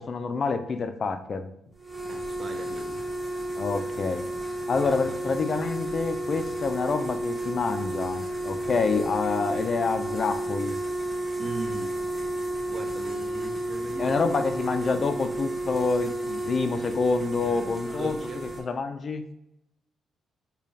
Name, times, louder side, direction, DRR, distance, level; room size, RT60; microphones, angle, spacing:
voice 1, 0.0-1.5 3.5-4.3 4.7-10.8 14.0-18.1 18.6-19.2, left 4 dB, 45° left, 8 dB, 0.3 m, -27 dB
sound 1, 1.8-18.6, right 1 dB, 25° right, 1.1 m, -32 dB
voice 2, 2.0-3.3 4.6-5.4 9.5-9.7 11.4-12.0 12.7-14.2 17.9-18.5, right 3 dB, 50° right, 5 dB, 0.6 m, -39 dB
5.1 x 2.2 x 2.6 m, 0.82 s
cardioid pair, 90°, 0 cm